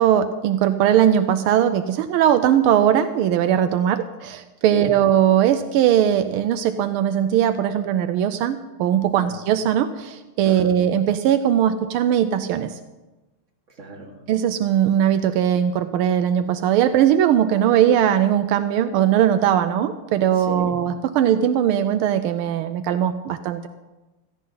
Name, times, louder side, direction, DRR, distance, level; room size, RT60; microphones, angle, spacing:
voice 1, 0.0-12.8 14.3-23.7, right 10 dB, 85° right, 10 dB, 1.5 m, -19 dB
voice 2, 13.8-14.1 20.5-20.8, right 3 dB, 35° right, -1 dB, 2.7 m, -33 dB
16.5 x 15.5 x 3.9 m, 1.1 s
omnidirectional pair, 2.3 m